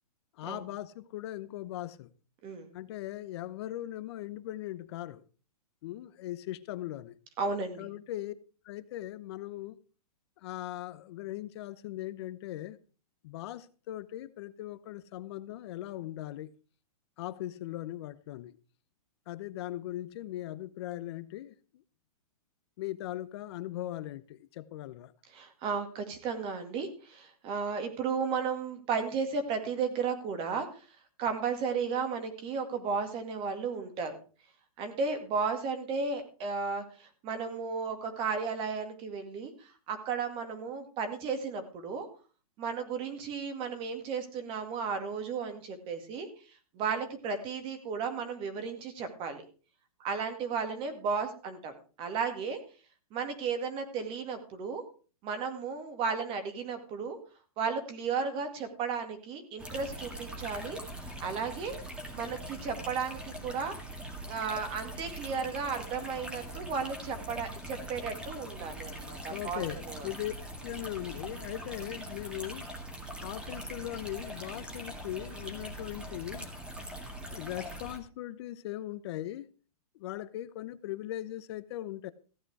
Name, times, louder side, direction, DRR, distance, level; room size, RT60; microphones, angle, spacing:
voice 1, 0.4-2.1 2.7-5.2 5.8-7.2 7.8-8.3 8.6-9.8 10.4-12.8 13.2-16.5 17.2-18.6 19.3-21.8 22.8-25.1 69.3-70.3 70.6-72.7 73.2-76.5 77.2-79.5 80.0-82.1, left 14 dB, 45° left, 0.8 m, -39 dB
voice 2, 2.4-2.7 7.4-7.9 25.3-30.7 31.2-34.2 34.8-42.1 42.6-46.3 46.7-49.4 50.0-52.6 53.1-54.8 55.2-57.2 57.6-60.8 61.2-61.7 62.1-63.8 64.3-70.1, right 5 dB, 30° right, 2.1 m, -34 dB
sound 1, 59.6-78.0, equal, 5° right, 1.9 m, -42 dB
15.0 x 8.8 x 4.8 m
hypercardioid pair, 150°, 19 cm